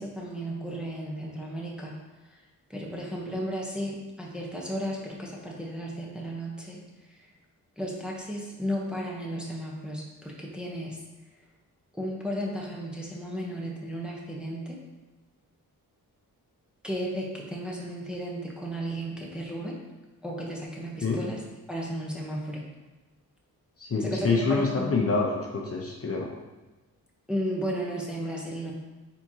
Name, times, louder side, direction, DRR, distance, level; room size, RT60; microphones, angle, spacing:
voice 1, 0.0-2.0 2.7-6.8 7.1-7.3 7.8-11.0 11.9-14.8 16.8-19.8 20.2-21.4 21.7-22.6 24.0-24.9 27.3-28.7, equal, ahead, -3 dB, 0.8 m, -34 dB
voice 2, 23.8-26.3, left 4 dB, 40° left, -1 dB, 0.7 m, -26 dB
4.4 x 3.7 x 2.8 m, 1.2 s
cardioid pair, 65°, 37 cm